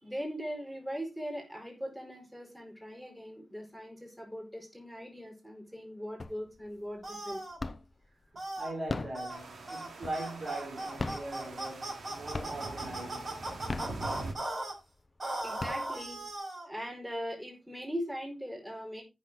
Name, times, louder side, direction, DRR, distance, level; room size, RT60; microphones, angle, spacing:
voice 1, 0.0-7.4 15.4-16.2 16.7-19.0, equal, 5° right, 5.2 m, -40 dB
sound 1, 6.2-6.7 7.0-8.1 8.7-10.5 10.9-12.0 12.3-12.9 13.5-14.5 15.0-15.1 15.4-16.3, left 3 dB, 35° left, 0.8 m, -38 dB
sound 2, 7.0-7.6 8.4-8.7 9.1-9.4 9.7-9.9 10.1-14.7 15.2-16.7, right 2 dB, 35° right, 5.4 m, -37 dB
voice 2, 8.6-13.5, right 2 dB, 50° right, 3.7 m, -40 dB
sound 3, 9.3-14.3, right 2 dB, 85° right, 2.9 m, -44 dB
14.5 x 6.6 x 3.8 m
wide cardioid pair, 150°, 0 cm